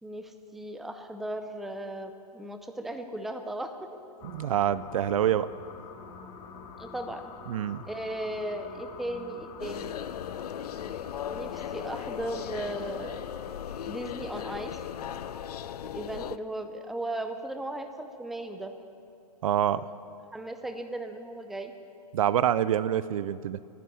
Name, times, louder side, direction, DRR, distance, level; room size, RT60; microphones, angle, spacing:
voice 1, 0.0-3.7 6.8-7.3 7.9-10.0 11.2-13.2 13.9-14.7 15.8-18.7 20.3-21.7, right 1 dB, ahead, 7 dB, 0.5 m, -36 dB
sound 1, 4.2-15.3, left 5 dB, 20° left, 1.2 m, -46 dB
voice 2, 4.3-5.5 7.5-7.8 19.4-19.8 22.1-23.6, right 10 dB, 55° right, 17 dB, 0.5 m, -26 dB
sound 2, 9.6-16.4, left 10 dB, 70° left, 0.5 m, -37 dB
14.0 x 10.0 x 9.8 m, 2.4 s
hypercardioid pair, 145°, 21 cm